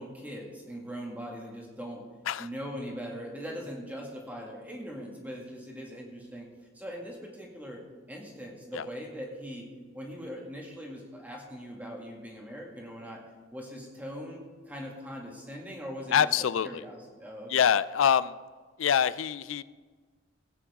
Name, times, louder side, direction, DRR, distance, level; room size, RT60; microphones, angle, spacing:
voice 1, 0.0-2.0 2.4-7.8 8.1-9.7 9.9-13.2 13.5-16.3 16.6-17.5, equal, 10° right, -1 dB, 2.0 m, -41 dB
voice 2, 16.1-16.8 17.5-18.4 18.8-19.6, left 8 dB, 75° left, 17 dB, 0.4 m, -25 dB
17.0 x 9.1 x 3.6 m, 1.4 s
head